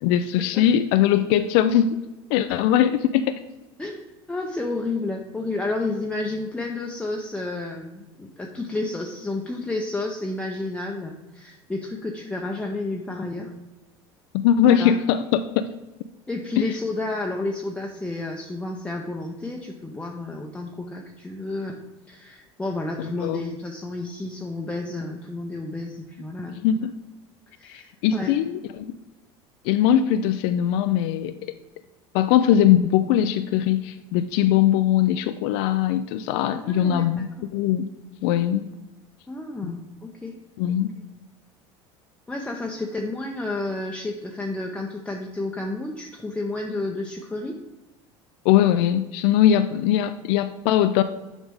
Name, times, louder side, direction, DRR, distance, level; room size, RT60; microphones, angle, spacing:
voice 1, 0.0-2.0 2.3-3.4 14.4-15.7 16.6-16.8 23.2-23.5 26.6-26.9 27.7-28.9 29.6-31.5 32.1-37.9 38.2-38.7 39.6-39.7 40.6-40.9 48.4-51.0, left 10 dB, 70° left, 10 dB, 0.4 m, -21 dB
voice 2, 3.8-13.5 14.7-14.9 16.3-21.8 22.1-26.6 27.6-28.3 36.5-37.2 39.3-40.4 42.3-47.6, left 2 dB, 10° left, 1 dB, 0.7 m, -31 dB
7.2 x 5.1 x 3.5 m, 1.1 s
hypercardioid pair, 90°, 14 cm